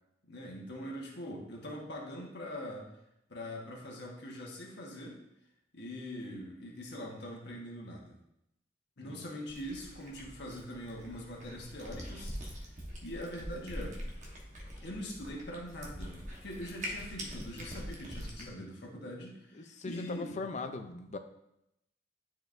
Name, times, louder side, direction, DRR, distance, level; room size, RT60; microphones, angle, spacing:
voice 1, 0.2-2.8 3.3-5.2 5.7-8.2 9.0-12.7 13.0-14.0 14.8-20.4, equal, 60° left, -2 dB, 1.3 m, -43 dB
Cat, 9.5-18.5, equal, 40° right, 1.2 m, -44 dB
voice 2, 19.6-21.2, left 3 dB, 35° left, 7 dB, 0.5 m, -40 dB
10.0 x 4.5 x 2.6 m, 0.83 s
head